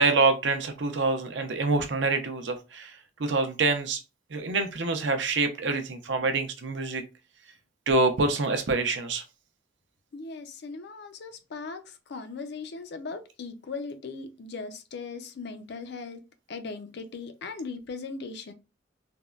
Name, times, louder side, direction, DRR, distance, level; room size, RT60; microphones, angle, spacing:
voice 1, 0.0-4.0 4.3-7.0 7.9-9.2, right 3 dB, 70° right, 0.6 m, -26 dB
voice 2, 10.1-16.2 16.5-18.5, left 4 dB, 60° left, 0.5 m, -38 dB
3.4 x 2.1 x 2.3 m
head